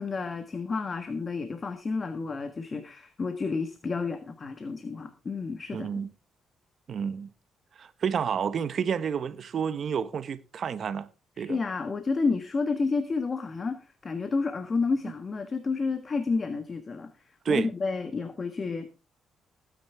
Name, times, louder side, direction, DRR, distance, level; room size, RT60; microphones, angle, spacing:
voice 1, 0.0-5.9 11.4-18.9, left 4 dB, 35° left, 1.4 m, -30 dB
voice 2, 5.7-6.1 6.9-7.3 7.8-11.1 11.4-11.6 17.4-17.7, right 7 dB, 55° right, 1.0 m, -30 dB
16.5 x 9.5 x 3.5 m
cardioid pair, 90°, 0 cm